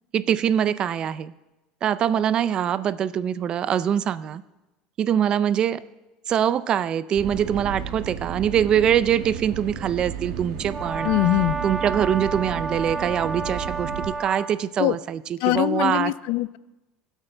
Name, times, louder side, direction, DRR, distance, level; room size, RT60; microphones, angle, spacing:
voice 1, 0.1-1.3 1.8-4.4 5.0-5.8 6.3-11.1 11.6-15.2 15.5-16.1, right 9 dB, 35° right, 16 dB, 0.4 m, -23 dB
sound 1, 7.1-14.1, right 7 dB, 75° right, 1.9 m, -34 dB
Brass instrument, 10.7-14.6, right 4 dB, 15° right, 1.1 m, -30 dB
voice 2, 11.0-11.6 14.8-15.0 15.4-16.6, left 17 dB, 65° left, 19 dB, 0.3 m, -22 dB
20.5 x 8.1 x 3.3 m, 1.0 s
cardioid pair, 140°, 3 cm